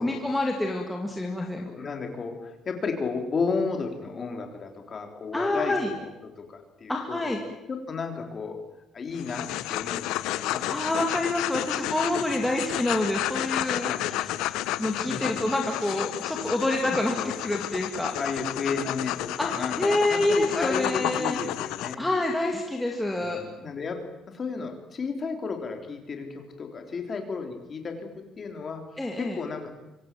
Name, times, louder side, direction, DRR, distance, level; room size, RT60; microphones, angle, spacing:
voice 1, 0.0-1.7 5.3-5.9 6.9-7.4 10.7-14.4 14.8-18.1 19.4-19.5 19.8-21.4 22.0-23.4 29.0-29.4, left 1 dB, 5° left, 1 dB, 2.3 m, -27 dB
voice 2, 1.4-7.2 7.7-8.6 8.9-11.1 12.1-12.5 13.8-14.5 15.0-15.5 17.1-17.4 18.2-22.1 23.2-24.0 24.3-28.8 29.2-29.7, left 4 dB, 25° left, 4 dB, 4.0 m, -33 dB
sound 1, 9.1-21.9, left 15 dB, 80° left, 1.1 m, -31 dB
25.5 x 25.5 x 7.8 m, 0.92 s
cardioid pair, 175°, 0 cm